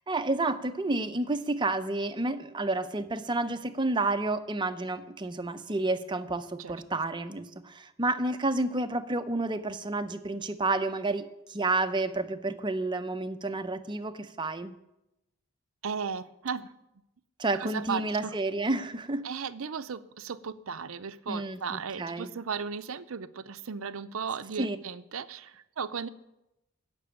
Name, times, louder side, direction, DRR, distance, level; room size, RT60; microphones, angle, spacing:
voice 1, 0.1-14.7 17.4-19.2 21.3-22.3 24.6-24.8, right 2 dB, 20° right, 10 dB, 0.6 m, -30 dB
voice 2, 15.8-16.7 17.6-18.4 19.2-26.1, right 6 dB, 70° right, 13 dB, 0.6 m, -36 dB
14.0 x 6.1 x 8.7 m, 0.90 s
head